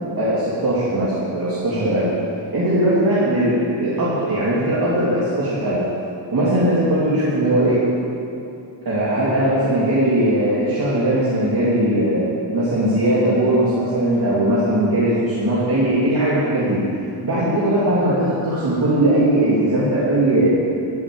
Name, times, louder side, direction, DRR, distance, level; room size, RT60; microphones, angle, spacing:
voice 1, 0.2-2.1 2.5-5.8 6.3-7.8 8.8-12.2 12.5-16.8 17.2-20.5, right 1 dB, 50° right, -9 dB, 2.7 m, -19 dB
12.0 x 8.5 x 8.6 m, 2.6 s
wide cardioid pair, 155°, 45 cm